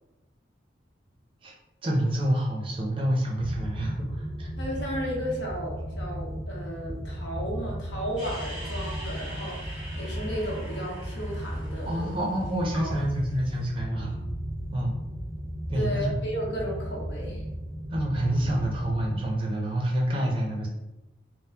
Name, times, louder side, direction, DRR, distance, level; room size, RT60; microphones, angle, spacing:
voice 1, 1.8-4.5 11.8-14.3 14.7-15.0 15.7-16.2 17.9-20.7, right 1 dB, 25° right, -1 dB, 0.5 m, -28 dB
sound 1, 3.4-19.2, equal, 30° left, 0.6 m, -35 dB
voice 2, 4.6-12.1 12.7-12.9 15.7-17.4, equal, 70° left, -2 dB, 0.8 m, -34 dB
sound 2, 8.2-13.6, right 1 dB, 5° right, 1.0 m, -44 dB
3.6 x 2.0 x 2.7 m, 1.0 s
head